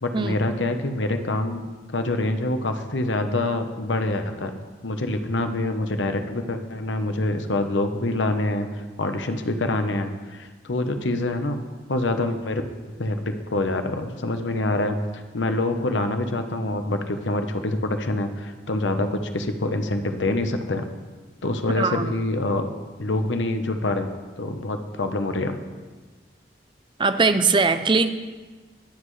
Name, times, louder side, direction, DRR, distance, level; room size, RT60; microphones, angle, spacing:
voice 1, 0.0-1.6 1.9-4.5 4.8-8.7 9.0-11.6 11.9-12.6 13.0-20.9 21.4-22.7 23.0-25.5, left 2 dB, 85° left, 7 dB, 1.0 m, -26 dB
voice 2, 21.7-22.2 27.0-28.1, right 4 dB, 25° right, 10 dB, 0.5 m, -21 dB
22.0 x 7.8 x 3.3 m, 1.3 s
head